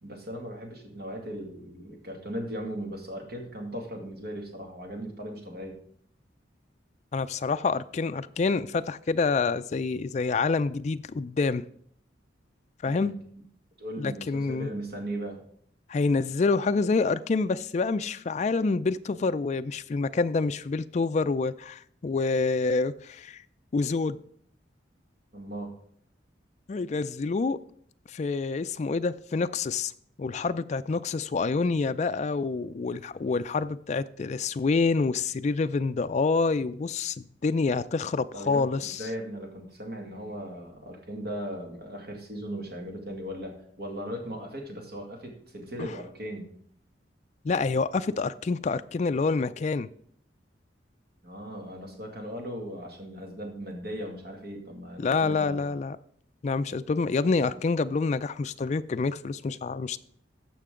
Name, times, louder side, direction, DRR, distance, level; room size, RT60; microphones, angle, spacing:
voice 1, 0.0-5.8 12.9-13.2 13.8-15.4 25.3-25.7 38.3-46.5 51.2-55.5, equal, 55° right, 2.1 m, -38 dB
voice 2, 7.1-11.6 12.8-13.2 14.0-14.7 15.9-23.4 23.7-24.2 26.7-27.6 28.1-29.9 30.2-39.0 45.8-45.9 47.4-49.9 55.0-56.0 56.4-60.0, left 4 dB, 35° left, 0.3 m, -27 dB
14.0 x 5.9 x 3.7 m
head